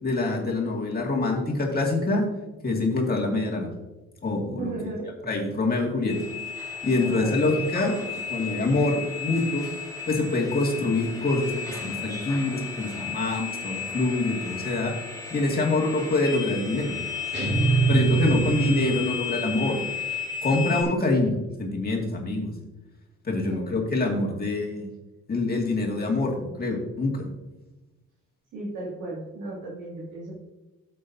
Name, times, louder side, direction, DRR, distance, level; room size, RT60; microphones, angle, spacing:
voice 1, 0.0-2.3 2.6-3.7 4.2-4.7 5.3-6.1 6.8-8.0 8.3-9.7 10.1-14.9 15.3-17.0 17.9-19.8 20.4-22.5 23.2-24.9 25.3-27.3, left 2 dB, 30° left, -1 dB, 2.2 m, -25 dB
voice 2, 4.5-5.1 7.0-7.4 18.2-18.7 23.4-23.8 28.5-30.3, right 2 dB, 85° right, -6 dB, 2.6 m, -35 dB
sound 1, 6.1-20.8, left 6 dB, 10° left, 1.9 m, -34 dB
sound 2, 17.3-19.4, right 5 dB, 40° right, 3.2 m, -23 dB
12.0 x 7.6 x 2.7 m, 1.1 s
cardioid pair, 90°, 30 cm